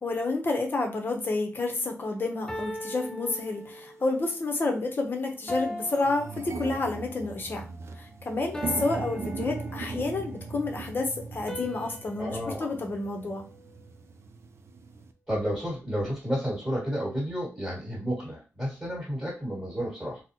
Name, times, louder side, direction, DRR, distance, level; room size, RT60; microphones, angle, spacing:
voice 1, 0.0-13.5, left 3 dB, 45° left, 3 dB, 0.7 m, -30 dB
sound 1, 1.0-1.3 2.5-4.1 5.5-7.1 8.5-10.2 11.5-13.9, equal, 10° left, 0.4 m, -40 dB
sound 2, 3.5-3.6 4.4-4.6 5.0-5.1 5.4-15.1, right 4 dB, 60° right, 0.4 m, -39 dB
voice 2, 12.2-12.7 15.3-20.2, equal, 10° right, -6 dB, 1.6 m, -31 dB
4.0 x 2.0 x 2.8 m, 0.33 s
wide cardioid pair, 135°, 5 cm